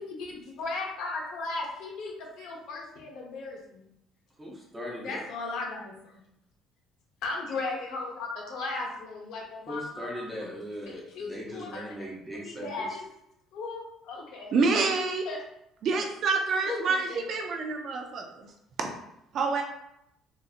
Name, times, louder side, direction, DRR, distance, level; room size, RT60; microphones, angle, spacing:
voice 1, 0.0-3.9 5.0-6.2 7.2-10.5 10.8-12.1 12.4-13.1 13.5-14.5 15.2-15.4 16.6-17.4, left 3 dB, 60° left, -1 dB, 0.8 m, -37 dB
voice 2, 4.4-5.2 9.7-12.8, equal, 5° right, -4 dB, 0.7 m, -39 dB
voice 3, 14.5-15.2 15.8-18.2 19.3-19.6, right 4 dB, 40° right, 3 dB, 0.4 m, -27 dB
3.9 x 2.6 x 2.4 m, 0.80 s
cardioid pair, 180°, 0 cm